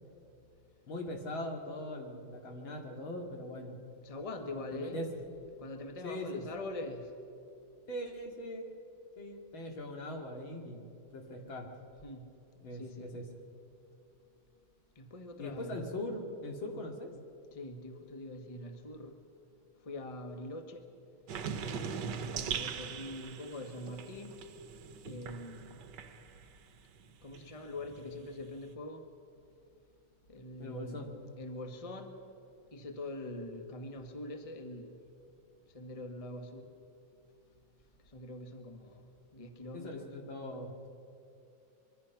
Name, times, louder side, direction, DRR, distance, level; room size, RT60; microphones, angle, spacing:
voice 1, 0.9-3.8 4.5-5.1 6.0-6.4 7.9-8.7 9.2-10.8 11.1-11.7 12.6-13.2 15.4-17.1 30.6-31.1 39.7-40.9, left 1 dB, 70° left, 3 dB, 3.1 m, -41 dB
voice 2, 4.0-5.0 5.6-7.1 12.0-12.2 12.8-13.1 15.0-15.9 17.5-19.2 19.8-20.9 22.3-24.4 25.0-25.8 27.2-29.1 30.3-31.0 31.4-32.2 32.7-34.9 35.7-36.7 38.1-40.1, left 1 dB, 20° left, 6 dB, 1.3 m, -43 dB
sound 1, 21.3-26.6 27.0-28.7, right 6 dB, 60° right, 1.5 m, -41 dB
25.0 x 23.0 x 5.9 m, 2.8 s
omnidirectional pair, 2.3 m